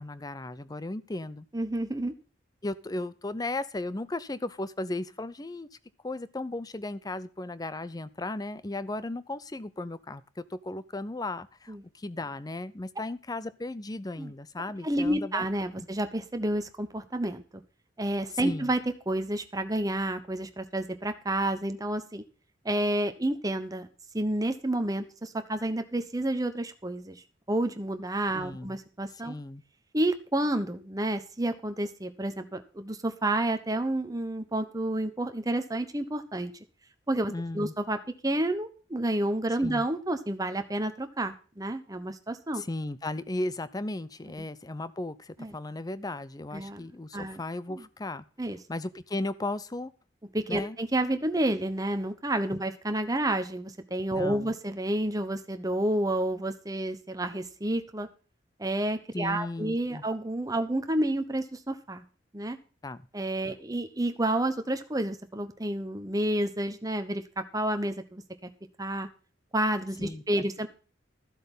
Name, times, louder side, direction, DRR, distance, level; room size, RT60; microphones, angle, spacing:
voice 1, 0.0-1.5 2.6-5.7 6.0-15.4 18.4-18.7 28.3-28.7 29.2-29.6 37.3-37.7 39.6-39.9 42.5-48.2 48.7-49.9 50.5-50.8 54.1-54.5 59.1-60.0 62.8-63.0 70.0-70.7, left 2 dB, 20° left, 15 dB, 0.6 m, -36 dB
voice 2, 1.5-2.1 11.7-11.8 14.2-14.3 14.8-17.6 18.0-18.8 19.1-22.2 22.6-23.9 24.1-27.2 27.5-29.3 29.9-36.5 37.1-38.0 38.2-42.6 45.4-45.5 46.5-47.4 47.7-47.8 48.4-48.6 50.3-58.1 58.6-62.0 62.3-62.6 63.1-68.2 68.8-69.1 69.5-70.7, right 1 dB, 20° right, 8 dB, 1.0 m, -30 dB
13.0 x 7.7 x 5.5 m, 0.37 s
head